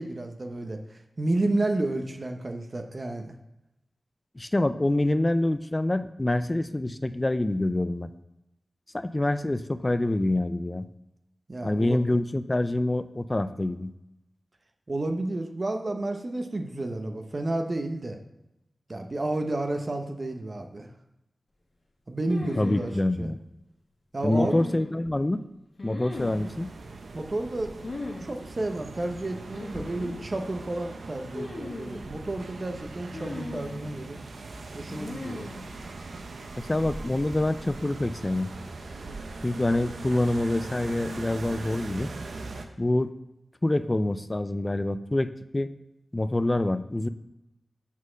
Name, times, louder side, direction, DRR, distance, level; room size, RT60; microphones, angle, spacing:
voice 1, 0.0-3.3 11.5-12.0 14.9-18.2 18.9-20.9 22.1-22.9 23.2-23.3 24.1-24.6 27.1-27.8 28.2-34.2 34.7-35.5, right 2 dB, 45° right, 5 dB, 0.8 m, -31 dB
voice 2, 4.4-8.1 8.9-10.9 11.6-13.9 22.6-23.4 24.2-25.4 25.8-26.7 36.6-38.5 39.4-42.1 42.8-43.1 43.6-45.7 46.1-47.1, left 1 dB, 25° left, 12 dB, 0.4 m, -26 dB
sound 1, 22.3-23.0 24.3-25.1 25.8-26.5 27.8-28.3 28.5-28.6 29.5-30.2 31.3-32.1 33.1-33.9 34.9-35.7, left 2 dB, 60° left, 1.6 m, -38 dB
sound 2, 26.1-42.7, right 3 dB, 85° right, 0.7 m, -40 dB
7.2 x 4.1 x 6.3 m, 0.92 s
wide cardioid pair, 65°, 0 cm